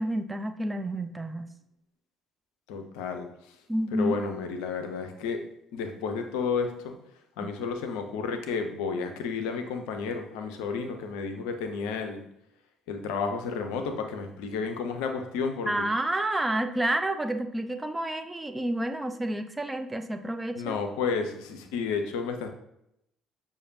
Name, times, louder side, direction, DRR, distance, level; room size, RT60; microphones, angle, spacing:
voice 1, 0.0-1.5 3.7-4.1 15.7-20.8, right 1 dB, 15° right, 8 dB, 0.4 m, -29 dB
voice 2, 2.7-3.3 3.9-5.4 5.7-6.9 7.4-12.2 12.9-15.9 20.6-22.5, left 5 dB, 70° left, 6 dB, 0.5 m, -31 dB
6.4 x 2.5 x 2.6 m, 0.79 s
hypercardioid pair, 50°, 0 cm